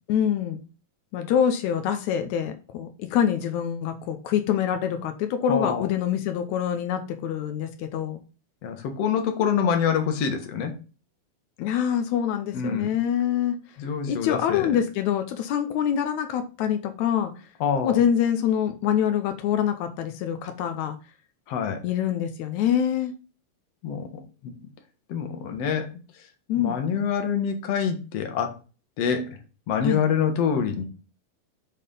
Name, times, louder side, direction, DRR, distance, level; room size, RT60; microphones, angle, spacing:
voice 1, 0.1-0.6 1.1-8.2 11.6-13.6 14.1-17.3 17.8-21.0 21.8-23.1 26.5-26.8 29.8-30.0, left 9 dB, 85° left, 7 dB, 1.6 m, -25 dB
voice 2, 5.5-5.9 8.6-10.7 12.5-12.9 13.8-14.8 17.6-18.0 21.5-21.8 23.8-24.5 25.1-25.9 26.6-28.6 29.0-29.3 29.7-30.8, left 7 dB, 60° left, 6 dB, 1.9 m, -26 dB
7.2 x 4.2 x 5.4 m, 0.34 s
omnidirectional pair, 4.3 m